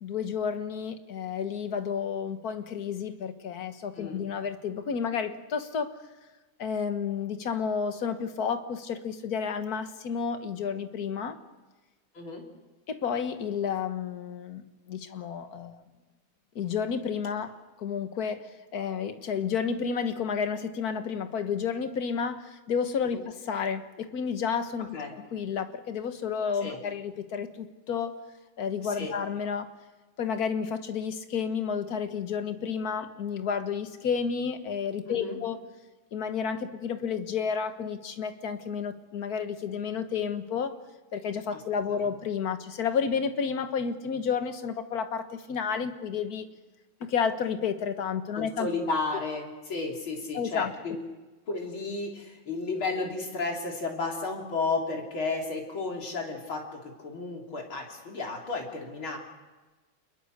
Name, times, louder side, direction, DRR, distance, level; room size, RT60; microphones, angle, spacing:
voice 1, 0.0-5.9 6.6-11.4 12.9-15.8 16.5-28.1 28.6-29.7 30.2-35.6 36.1-40.8 41.1-46.5 47.0-48.7 50.3-50.7, left 6 dB, 50° left, 8 dB, 1.7 m, -31 dB
voice 2, 28.8-29.2 35.0-35.4 41.5-41.6 41.9-42.1 48.3-51.0 51.5-59.2, left 3 dB, 75° left, 0 dB, 4.4 m, -33 dB
28.5 x 21.5 x 6.7 m, 1.2 s
omnidirectional pair, 2.2 m